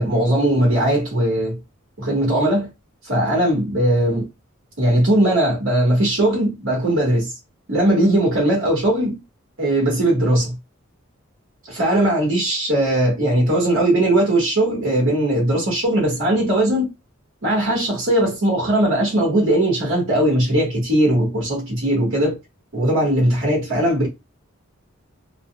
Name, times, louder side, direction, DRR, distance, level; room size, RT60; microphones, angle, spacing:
voice 1, 0.0-1.6 2.0-2.7 3.0-4.3 4.8-7.3 7.7-9.2 9.6-10.6 11.7-16.9 17.4-22.4 22.7-24.1, right 1 dB, 85° right, 1.4 m, -19 dB
3.9 x 2.2 x 2.2 m
head